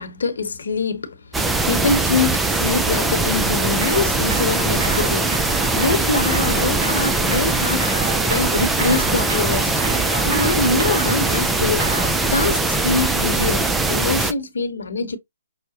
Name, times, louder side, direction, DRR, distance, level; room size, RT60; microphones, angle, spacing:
voice 1, 0.0-9.8 10.2-12.0 12.3-15.2, left 4 dB, 70° left, 1.0 m, -24 dB
sound 1, 1.3-14.3, right 3 dB, 5° right, 0.4 m, -21 dB
sound 2, 3.4-12.1, right 3 dB, 45° right, 1.8 m, -31 dB
5.7 x 2.1 x 2.8 m
hypercardioid pair, 140°, 0 cm